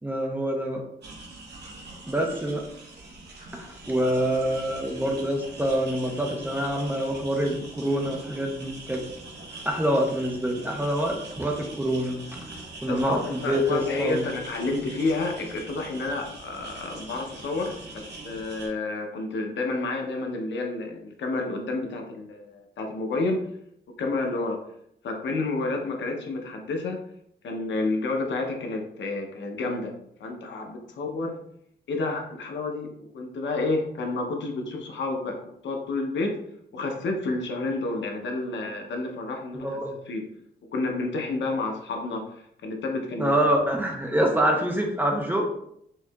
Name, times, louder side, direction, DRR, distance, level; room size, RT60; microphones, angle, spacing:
voice 1, 0.0-0.8 2.1-2.6 3.5-9.0 9.7-12.2 12.8-14.3 39.5-39.9 43.2-45.5, equal, 10° right, 1 dB, 0.4 m, -26 dB
sound 1, 1.0-18.7, right 2 dB, 60° right, 1.0 m, -43 dB
voice 2, 12.9-23.5 23.9-24.6 25.0-27.0 27.4-31.4 31.9-36.4 36.7-39.8 40.1-40.3 40.7-42.4 42.6-43.3, left 3 dB, 70° left, 2 dB, 0.7 m, -30 dB
4.6 x 2.7 x 2.3 m, 0.73 s
wide cardioid pair, 165°, 19 cm